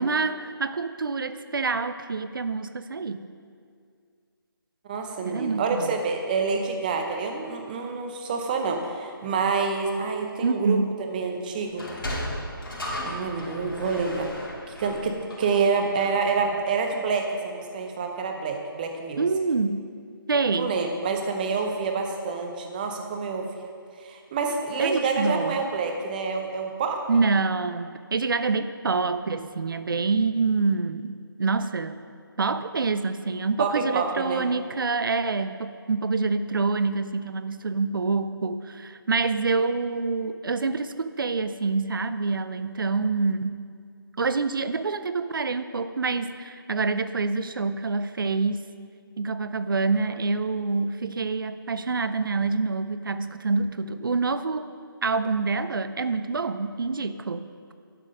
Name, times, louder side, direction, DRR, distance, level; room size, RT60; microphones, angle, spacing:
voice 1, 0.0-3.2 5.2-5.9 10.4-11.0 19.2-19.9 20.3-20.8 24.8-25.6 27.1-32.1 32.4-43.6 44.2-48.7 49.2-54.7 55.0-57.5, right 4 dB, 65° right, 12 dB, 0.5 m, -26 dB
voice 2, 4.9-10.8 11.1-11.9 13.0-14.3 14.8-19.3 20.5-23.5 24.0-27.0 33.6-34.4, right 4 dB, 20° right, 3 dB, 0.7 m, -27 dB
Sliding door, 11.7-16.3, left 1 dB, 65° left, 2.8 m, -35 dB
11.0 x 6.0 x 5.1 m, 2.2 s
figure-of-eight pair, 155°, 12 cm